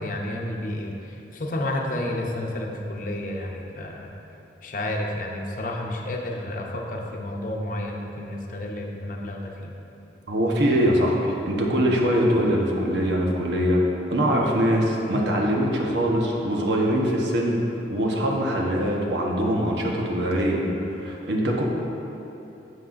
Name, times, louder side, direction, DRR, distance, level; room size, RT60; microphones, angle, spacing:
voice 1, 0.0-4.1 4.6-9.7, left 1 dB, 45° left, 0 dB, 0.8 m, -31 dB
voice 2, 10.3-13.8 14.1-17.6 17.9-20.6 20.9-21.6, equal, 75° right, -1 dB, 1.1 m, -23 dB
9.6 x 7.6 x 2.6 m, 2.9 s
head